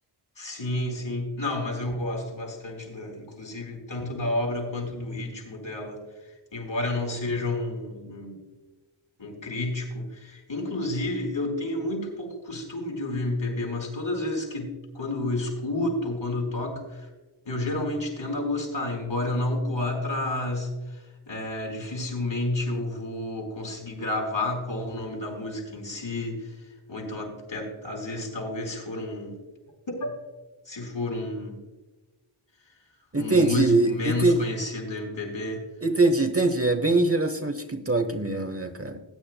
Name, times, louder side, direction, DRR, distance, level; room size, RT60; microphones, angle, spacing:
voice 1, 0.4-6.0 6.5-8.5 9.2-17.1 17.5-26.5 26.9-29.4 29.9-30.1 30.7-31.6 33.2-35.6, left 2 dB, 65° left, -1 dB, 4.3 m, -30 dB
voice 2, 33.1-34.4 35.8-39.0, right 2 dB, 30° right, 7 dB, 1.0 m, -23 dB
19.5 x 9.6 x 2.2 m, 1.1 s
wide cardioid pair, 75°, 49 cm